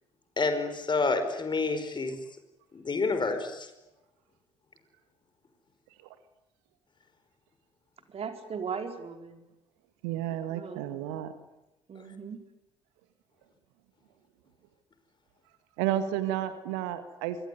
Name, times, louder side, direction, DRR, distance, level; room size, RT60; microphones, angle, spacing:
voice 1, 0.4-2.2 2.7-3.7, left 3 dB, 30° left, 9 dB, 5.0 m, -28 dB
voice 2, 8.1-9.4 10.5-10.9 11.9-12.4, right 6 dB, 40° right, 6 dB, 4.4 m, -38 dB
voice 3, 10.0-11.3 15.8-17.4, right 11 dB, 65° right, 11 dB, 1.9 m, -31 dB
25.0 x 24.5 x 9.7 m, 0.93 s
figure-of-eight pair, 50°, 16 cm